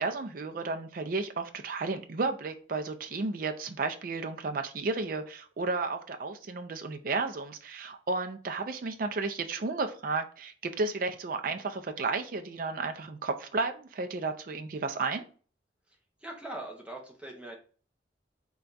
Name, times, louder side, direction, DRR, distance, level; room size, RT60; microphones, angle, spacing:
voice 1, 0.0-15.2, right 3 dB, 50° right, 6 dB, 0.4 m, -33 dB
voice 2, 15.9-17.6, right 1 dB, 5° right, -1 dB, 0.8 m, -42 dB
3.4 x 2.3 x 3.9 m, 0.40 s
head